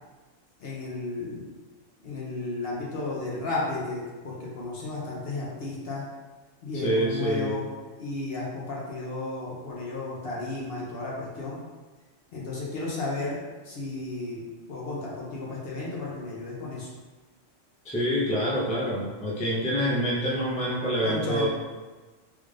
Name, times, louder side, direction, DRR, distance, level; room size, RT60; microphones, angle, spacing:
voice 1, 0.6-1.4 2.0-6.0 6.6-7.7 8.0-11.6 12.3-13.4 13.6-14.4 14.7-16.9 21.0-21.5, left 2 dB, 55° left, -5 dB, 0.9 m, -33 dB
voice 2, 6.7-7.6 17.8-21.5, equal, 10° left, -6 dB, 0.4 m, -26 dB
3.5 x 2.5 x 3.2 m, 1.3 s
omnidirectional pair, 1.3 m